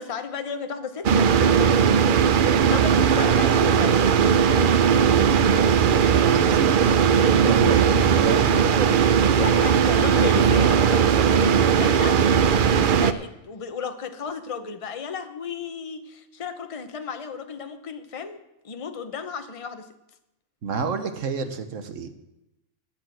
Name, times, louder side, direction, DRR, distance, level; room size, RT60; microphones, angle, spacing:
voice 1, 0.0-4.6 9.4-12.2 12.6-18.4 18.6-19.9, left 6 dB, 30° left, 7 dB, 0.8 m, -34 dB
sound 1, 1.0-13.1, right 7 dB, 55° right, 0.6 m, -18 dB
voice 2, 5.4-9.0 20.6-22.1, right 5 dB, 85° right, 8 dB, 1.4 m, -29 dB
12.5 x 7.5 x 7.7 m, 0.90 s
omnidirectional pair, 1.3 m